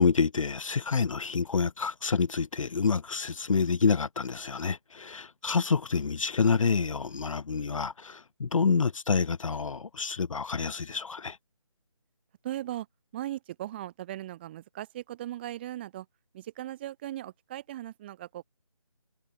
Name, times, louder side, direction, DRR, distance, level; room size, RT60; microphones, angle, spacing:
voice 1, 0.0-11.4, left 5 dB, 65° left, 0.6 m, -27 dB
voice 2, 12.4-12.9 13.1-16.1 16.3-18.4, right 13 dB, 20° right, 1.5 m, -38 dB
figure-of-eight pair, 160°, 18 cm